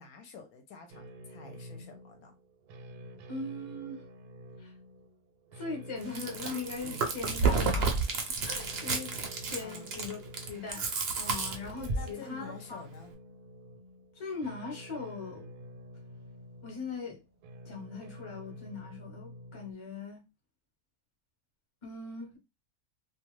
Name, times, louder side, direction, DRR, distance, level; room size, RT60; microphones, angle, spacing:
voice 1, 0.0-2.3 9.6-9.9 11.9-13.1, left 5 dB, 75° left, 1.0 m, -49 dB
sound 1, 0.9-19.7, equal, 80° right, 1.1 m, -49 dB
voice 2, 3.3-4.0 4.6-4.7 5.5-8.0 8.4-9.1 9.5-10.2 10.5-10.9 11.2-12.8 14.1-15.5 16.6-17.2 17.6-20.2 21.8-22.4, left 4 dB, 25° left, 0.7 m, -40 dB
Chewing mastication, 6.0-12.1, right 4 dB, 60° right, 0.6 m, -31 dB
2.5 x 2.3 x 3.0 m
omnidirectional pair, 1.6 m